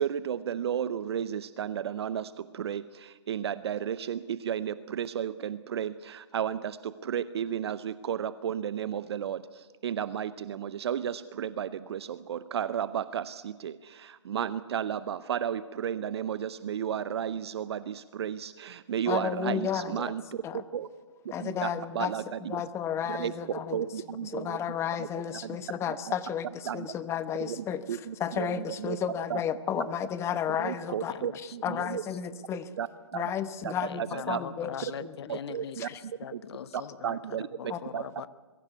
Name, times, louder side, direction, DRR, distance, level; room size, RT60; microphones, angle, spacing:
voice 1, 0.0-20.4 20.7-20.9 21.4-21.7 21.9-22.6 23.1-23.3 23.7-24.6 25.0-25.1 26.7-26.9 27.4-28.5 28.8-29.0 29.3-29.4 29.8-29.9 30.6-32.0 32.8-33.2 33.6-33.7 34.0-34.4 35.3-35.9 36.3-36.4 37.0-38.0, right 9 dB, 60° right, 15 dB, 0.7 m, -33 dB
voice 2, 19.1-20.1 20.4-20.6 21.3-22.1 22.4-23.9 24.2-32.7 33.1-35.2 35.8-36.0 37.7-37.8, left 8 dB, 15° left, 13 dB, 1.0 m, -33 dB
voice 3, 31.1-31.8 33.7-37.2 37.6-38.3, left 9 dB, 60° left, 16 dB, 1.0 m, -42 dB
22.5 x 15.5 x 8.2 m, 1.4 s
hypercardioid pair, 130°, 15 cm